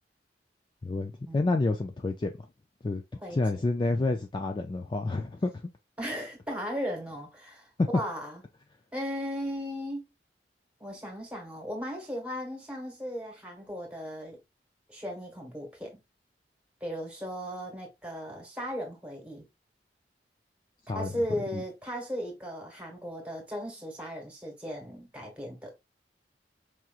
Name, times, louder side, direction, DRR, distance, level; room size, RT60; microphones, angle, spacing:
voice 1, 0.8-2.3 2.8-3.0 3.3-5.5 7.8-7.9 20.9-21.1 21.5-21.6, left 2 dB, 25° left, 0.3 m, -28 dB
voice 2, 3.2-3.6 6.0-8.4 8.9-10.0 10.8-14.4 14.9-16.0 16.8-19.4 20.9-25.7, equal, 5° right, 1.5 m, -36 dB
4.7 x 2.9 x 2.4 m
head